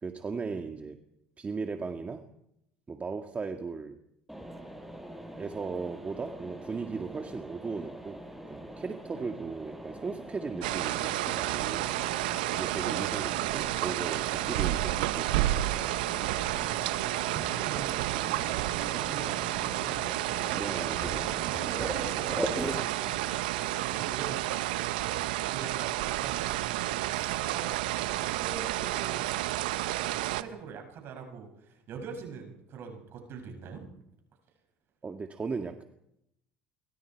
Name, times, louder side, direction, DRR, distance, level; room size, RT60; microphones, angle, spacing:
voice 1, 0.0-1.0 1.4-2.3 2.9-4.0 5.4-11.9 12.5-15.6 20.5-21.3 35.0-35.8, right 4 dB, 30° right, 6 dB, 1.9 m, -37 dB
Mechanisms, 4.3-22.8, right 1 dB, 5° right, 6.0 m, -42 dB
sound 1, 10.6-30.4, right 16 dB, 80° right, 1.0 m, -31 dB
voice 2, 16.5-29.3 30.0-33.9, right 5 dB, 60° right, 3 dB, 6.9 m, -44 dB
28.5 x 24.0 x 4.7 m, 0.81 s
hypercardioid pair, 70°, 5 cm